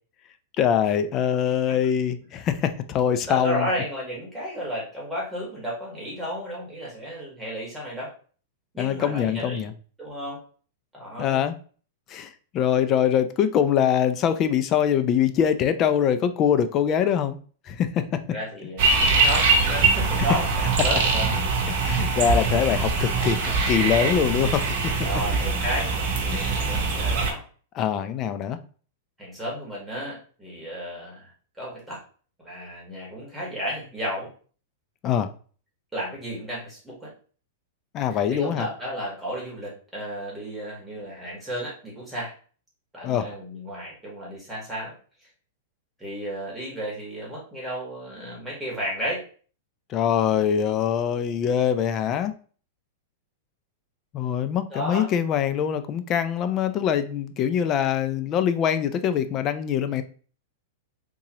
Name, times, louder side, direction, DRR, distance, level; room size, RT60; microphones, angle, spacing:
voice 1, 0.6-3.7 8.8-9.7 11.2-11.5 12.1-17.4 17.6-18.2 20.2-20.3 21.7-24.9 26.3-26.7 27.7-28.6 35.0-35.3 37.9-38.7 43.0-43.3 49.9-52.3 54.1-60.0, left 8 dB, 30° left, 10 dB, 0.4 m, -23 dB
voice 2, 3.3-8.1 8.7-9.6 10.0-10.4 10.9-11.4 18.3-21.4 24.0-24.1 25.0-27.4 29.2-31.3 31.6-32.0 32.4-34.3 35.9-37.1 38.4-42.3 42.9-44.9 46.0-49.2 54.7-55.1, equal, 5° right, -5 dB, 1.6 m, -33 dB
sound 1, 18.8-27.3, right 4 dB, 50° right, 1.1 m, -23 dB
3.8 x 2.8 x 2.9 m, 0.41 s
supercardioid pair, 150°, 0 cm